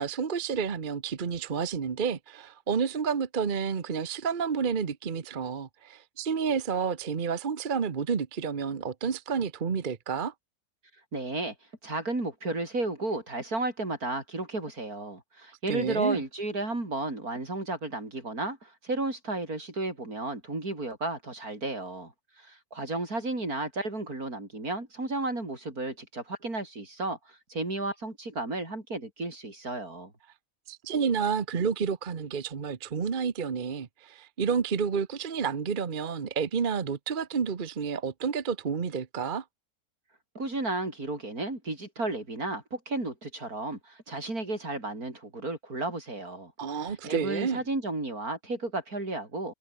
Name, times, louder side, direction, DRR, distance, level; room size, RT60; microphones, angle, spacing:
voice 1, 0.0-10.3 15.7-16.2 30.7-39.4 46.6-47.6, right 6 dB, 40° right, 1.1 m, -30 dB
voice 2, 11.1-11.5 11.8-30.1 40.3-49.5, right 2 dB, 80° right, 6.5 m, -33 dB
omnidirectional pair, 1.5 m